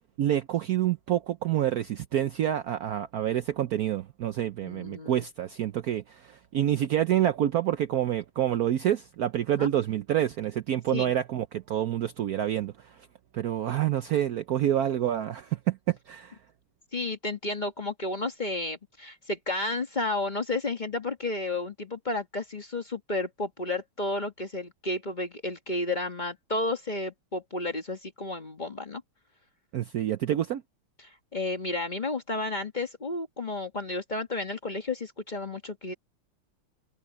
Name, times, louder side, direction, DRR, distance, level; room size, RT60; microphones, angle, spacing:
voice 1, 0.2-12.7 13.3-16.4 29.7-30.6, right 11 dB, 85° right, 0.8 m, -27 dB
voice 2, 4.6-5.2 9.6-9.7 10.9-11.1 16.9-29.0 31.0-35.9, left 2 dB, 25° left, 1.3 m, -32 dB
omnidirectional pair, 2.4 m